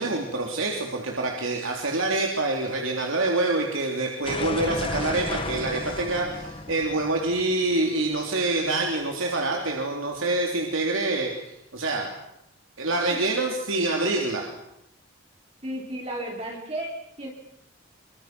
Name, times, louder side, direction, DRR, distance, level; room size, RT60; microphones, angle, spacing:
voice 1, 0.0-12.1 12.8-14.5, right 2 dB, 80° right, 1 dB, 3.4 m, -26 dB
sound 1, 4.2-9.0, left 2 dB, 25° left, 1.1 m, -34 dB
voice 2, 15.6-17.3, right 1 dB, 30° right, -2 dB, 3.5 m, -33 dB
26.0 x 25.0 x 6.2 m, 0.82 s
head